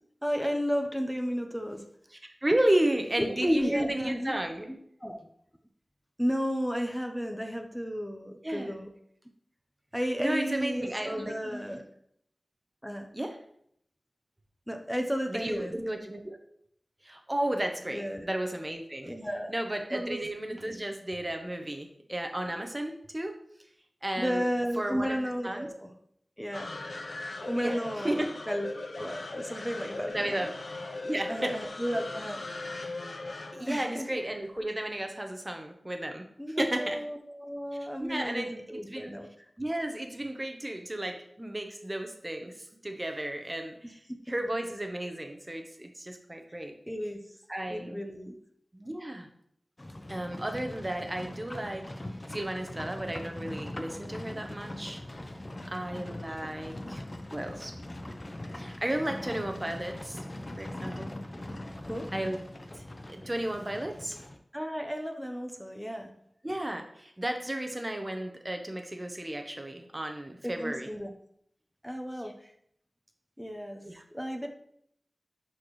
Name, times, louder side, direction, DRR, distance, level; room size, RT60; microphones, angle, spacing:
voice 1, 0.2-1.8 3.2-4.3 5.0-5.2 6.2-8.9 9.9-11.8 12.8-13.1 14.7-15.7 17.9-18.3 19.0-19.5 19.9-20.2 20.6-20.7 24.2-25.9 26.4-26.7 27.5-30.4 31.3-32.4 33.7-34.1 36.4-39.5 46.9-47.2 47.7-48.3 61.8-62.1 64.5-66.1 70.4-71.1 71.8-72.3 73.4-73.8 74.1-74.5, equal, ahead, 4 dB, 0.9 m, -33 dB
voice 2, 2.1-4.7 8.4-8.9 10.2-11.4 13.1-13.4 15.3-16.3 17.0-19.1 19.5-23.3 24.0-24.4 24.8-25.2 25.4-25.7 27.6-27.8 28.0-28.4 30.1-30.5 31.0-31.5 33.5-37.0 38.0-39.1 39.6-42.6 42.8-44.0 44.3-46.7 47.5-48.0 48.7-49.3 50.1-55.0 55.7-57.0 57.3-57.7 58.6-60.2 60.6-61.2 62.1-62.4 62.7-64.2 66.4-70.9 72.2-72.3 73.8-74.0, right 1 dB, 25° right, 4 dB, 1.0 m, -33 dB
sound 1, 26.5-34.9, left 2 dB, 70° left, 0.8 m, -39 dB
Livestock farm animals working animals, 49.8-64.4, left 1 dB, 35° left, 0.8 m, -41 dB
11.0 x 4.4 x 3.2 m, 0.70 s
wide cardioid pair, 50°, 0 cm